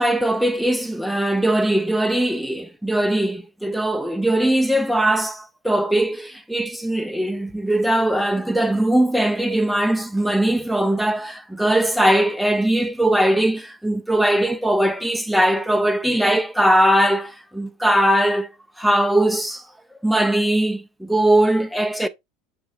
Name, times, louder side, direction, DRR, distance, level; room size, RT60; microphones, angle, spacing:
voice 1, 0.0-18.5 18.8-19.6 20.0-22.1, right 1 dB, ahead, 0.5 m, -20 dB
7.6 x 2.9 x 2.4 m
supercardioid pair, 105°, 0 cm